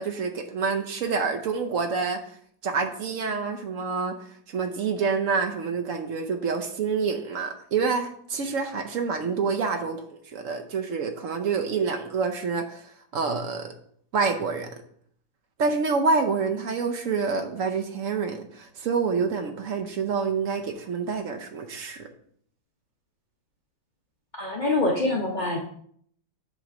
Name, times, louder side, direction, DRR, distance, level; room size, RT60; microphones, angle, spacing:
voice 1, 0.0-2.2 2.6-4.1 4.5-13.7 14.1-14.7 15.6-22.1, right 5 dB, 65° right, 5 dB, 0.8 m, -27 dB
voice 2, 24.4-25.6, left 2 dB, 60° left, -1 dB, 0.4 m, -25 dB
7.8 x 3.1 x 6.0 m, 0.64 s
omnidirectional pair, 2.1 m